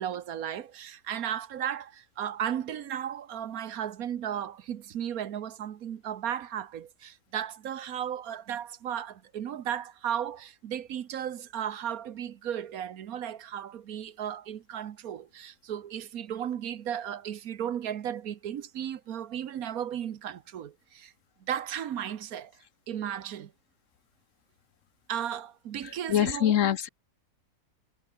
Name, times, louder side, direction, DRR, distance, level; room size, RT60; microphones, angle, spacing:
voice 1, 0.0-21.1 21.5-22.5 22.9-23.5 25.1-26.6, right 9 dB, 70° right, 1.4 m, -35 dB
voice 2, 25.8-26.9, left 10 dB, 60° left, 1.0 m, -25 dB
omnidirectional pair, 1.6 m